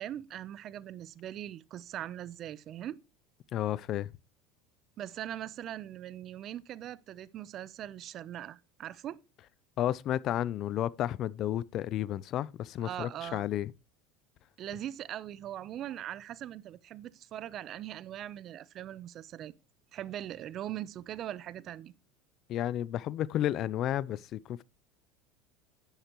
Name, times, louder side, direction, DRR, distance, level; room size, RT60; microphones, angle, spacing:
voice 1, 0.0-3.0 5.0-9.2 12.8-13.5 14.6-19.5 19.9-21.9, right 11 dB, 45° right, 0.7 m, -41 dB
voice 2, 3.5-4.1 9.8-13.7 22.5-24.6, left 12 dB, 50° left, 0.5 m, -32 dB
10.5 x 10.0 x 3.0 m
supercardioid pair, 115°, 0 cm